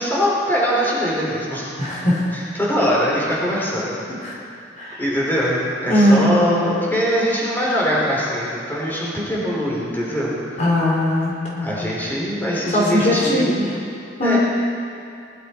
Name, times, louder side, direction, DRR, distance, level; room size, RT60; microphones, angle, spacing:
voice 1, 0.0-1.7 2.3-4.0 5.0-10.6 11.6-13.7 14.2-14.4, equal, 10° left, -6 dB, 3.4 m, -22 dB
voice 2, 1.8-2.2 4.1-4.3 4.8-5.0 5.9-6.4 10.6-11.7 12.7-13.5 14.2-14.4, left 1 dB, 45° left, -5 dB, 3.3 m, -19 dB
20.5 x 11.5 x 4.4 m, 2.5 s
head